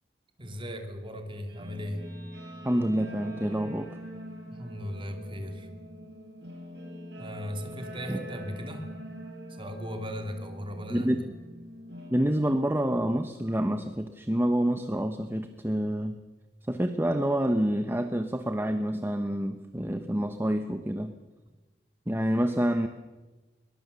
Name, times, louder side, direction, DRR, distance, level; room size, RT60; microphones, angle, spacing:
voice 1, 0.4-2.0 4.4-5.7 7.2-8.9 9.5-11.1, equal, 30° right, 5 dB, 2.9 m, -37 dB
Guitar, 1.5-12.1, equal, 70° right, 6.0 m, -43 dB
voice 2, 2.6-4.0 10.9-11.3 12.1-16.2 16.7-21.1 22.1-22.9, equal, 15° right, 8 dB, 1.0 m, -27 dB
21.5 x 21.0 x 6.9 m, 1.2 s
head